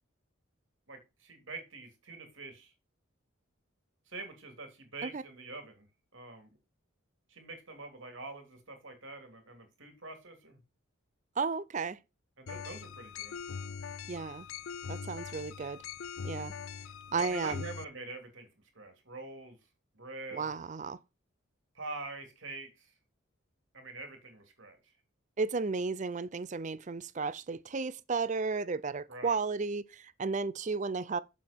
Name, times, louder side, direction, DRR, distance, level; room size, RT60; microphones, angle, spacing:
voice 1, 0.9-2.7 4.1-5.8 6.1-6.6 7.3-10.6 12.4-13.3 17.1-18.5 18.7-19.6 19.9-20.5 21.7-22.9 23.7-24.9 29.1-29.4, right 3 dB, 65° right, 3.2 m, -45 dB
voice 2, 11.4-12.0 14.1-14.5 14.9-15.8 16.2-16.5 17.1-17.7 20.3-21.0 25.4-31.2, right 4 dB, 35° right, 0.5 m, -33 dB
sound 1, 12.5-17.8, left 6 dB, 75° left, 0.5 m, -42 dB
7.8 x 7.3 x 4.5 m
head